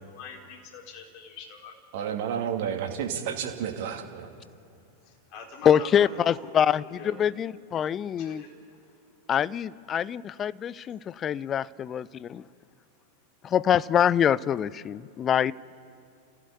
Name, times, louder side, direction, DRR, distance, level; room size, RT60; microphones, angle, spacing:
voice 1, 0.1-1.7 5.0-6.6 6.9-7.1 8.2-8.5, left 5 dB, 45° left, 1 dB, 4.0 m, -43 dB
voice 2, 1.9-4.3, right 8 dB, 50° right, 4 dB, 2.2 m, -31 dB
voice 3, 5.6-8.4 9.3-12.4 13.4-15.5, left 9 dB, 25° left, 20 dB, 0.5 m, -25 dB
29.0 x 15.5 x 8.5 m, 2.7 s
figure-of-eight pair, 90°, 0 cm